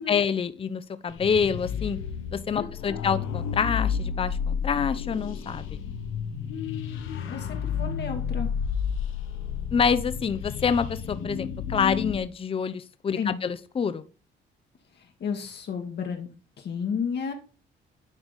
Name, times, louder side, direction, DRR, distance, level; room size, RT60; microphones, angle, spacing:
voice 1, 0.0-2.0 2.3-5.8 9.7-14.0, left 6 dB, 30° left, 14 dB, 0.5 m, -27 dB
sound 1, 1.1-12.2, left 7 dB, 80° left, 0.9 m, -31 dB
voice 2, 2.5-3.0 6.5-8.5 13.1-13.4 14.9-17.3, left 6 dB, 60° left, 3 dB, 1.3 m, -33 dB
9.6 x 3.4 x 4.0 m, 0.37 s
cardioid pair, 90°, 20 cm